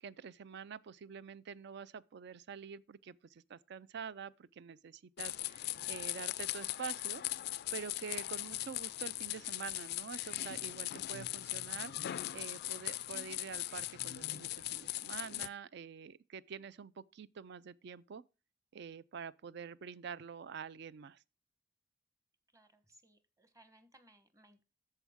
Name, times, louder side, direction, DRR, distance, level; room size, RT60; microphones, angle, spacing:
voice 1, 0.0-7.2 7.7-18.2 18.7-21.2, right 6 dB, 60° right, 0.4 m, -47 dB
sound 1, 5.2-15.5, left 15 dB, 60° left, 0.3 m, -40 dB
voice 2, 22.5-24.6, right 1 dB, 15° right, 1.0 m, -64 dB
13.5 x 4.6 x 3.5 m
head